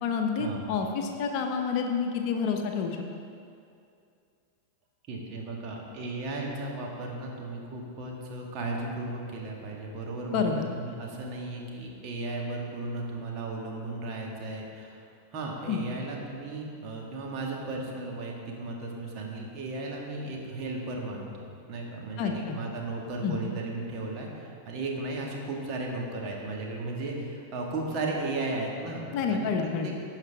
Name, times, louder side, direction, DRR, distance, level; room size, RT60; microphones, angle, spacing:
voice 1, 0.0-3.0 10.3-10.7 15.7-15.8 22.2-22.6 23.2-23.4 29.1-29.9, left 6 dB, 45° left, 4 dB, 0.9 m, -28 dB
voice 2, 5.1-15.0 15.3-29.9, right 2 dB, 35° right, -2 dB, 1.8 m, -35 dB
16.5 x 5.8 x 3.5 m, 2.4 s
figure-of-eight pair, 90°, 0 cm